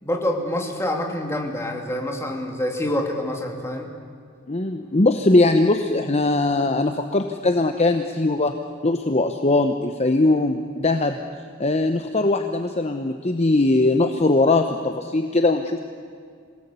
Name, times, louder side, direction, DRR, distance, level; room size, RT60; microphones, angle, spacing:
voice 1, 0.0-3.9, left 1 dB, 15° left, 1 dB, 2.7 m, -26 dB
voice 2, 4.5-8.5 8.8-11.2 11.6-15.8, left 2 dB, 35° left, 6 dB, 0.9 m, -20 dB
26.5 x 18.5 x 8.3 m, 2.2 s
head